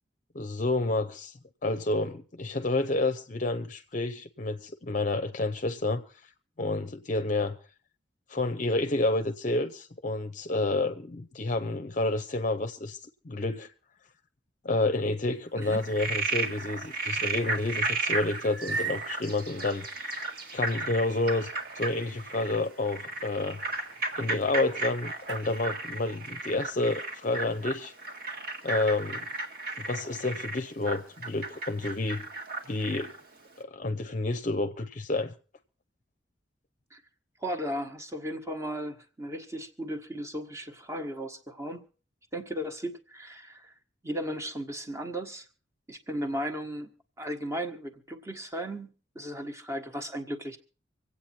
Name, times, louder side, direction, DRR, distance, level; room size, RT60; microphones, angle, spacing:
voice 1, 0.3-1.3 1.6-6.0 6.6-7.6 8.3-13.0 13.2-13.7 14.6-19.9 20.5-21.5 21.8-23.6 24.2-27.9 28.6-29.3 29.8-32.3 32.7-33.2 33.6-35.3, left 2 dB, 45° left, 0.7 m, -29 dB
sound 1, 15.4-25.5, right 4 dB, 80° right, 1.1 m, -43 dB
Frog, 15.7-33.2, right 3 dB, 55° right, 1.9 m, -34 dB
voice 2, 37.4-41.8 42.3-43.7 44.0-45.5 45.9-46.9 47.2-50.6, equal, 15° right, 1.3 m, -36 dB
25.5 x 8.6 x 4.4 m
head